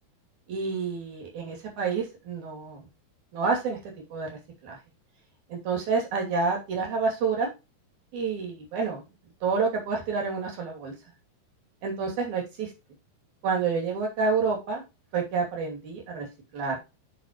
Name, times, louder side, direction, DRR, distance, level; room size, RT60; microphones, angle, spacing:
voice 1, 0.5-2.9 3.3-4.8 5.5-7.5 8.1-9.0 9.4-10.9 11.8-12.7 13.4-14.8 15.1-16.3 16.5-16.8, right 4 dB, 50° right, 1 dB, 3.8 m, -28 dB
7.9 x 6.7 x 3.0 m, 0.26 s
omnidirectional pair, 4.9 m